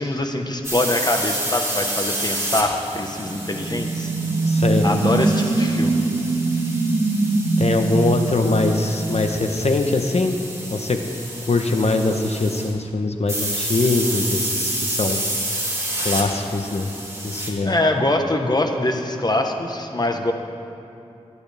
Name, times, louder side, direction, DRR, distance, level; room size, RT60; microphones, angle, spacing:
voice 1, 0.0-4.1 4.8-6.0 17.6-20.3, left 1 dB, 35° left, 3 dB, 1.3 m, -23 dB
sound 1, 0.6-12.7 13.3-17.5, right 1 dB, 25° right, 3.4 m, -29 dB
sound 2, 3.0-9.5, right 2 dB, 85° right, 1.7 m, -22 dB
voice 2, 4.5-4.8 7.6-10.4 10.7-11.0 11.5-15.2 16.0-16.9 17.2-17.8, left 3 dB, 60° left, 5 dB, 1.1 m, -22 dB
21.5 x 11.0 x 3.5 m, 2.7 s
cardioid pair, 50°, 12 cm